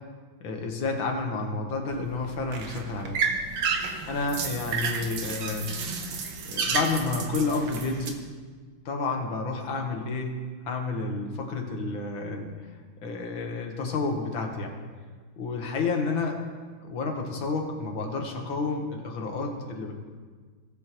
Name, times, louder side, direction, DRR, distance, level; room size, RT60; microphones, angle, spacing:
voice 1, 0.4-3.2 4.1-5.7 6.4-8.2 8.9-12.5 13.0-14.8 15.4-16.4 16.8-19.9, left 3 dB, 70° left, 2 dB, 2.1 m, -30 dB
sound 1, 1.9-8.1, right 5 dB, 70° right, 1.7 m, -31 dB
19.0 x 8.1 x 3.0 m, 1.5 s
omnidirectional pair, 2.3 m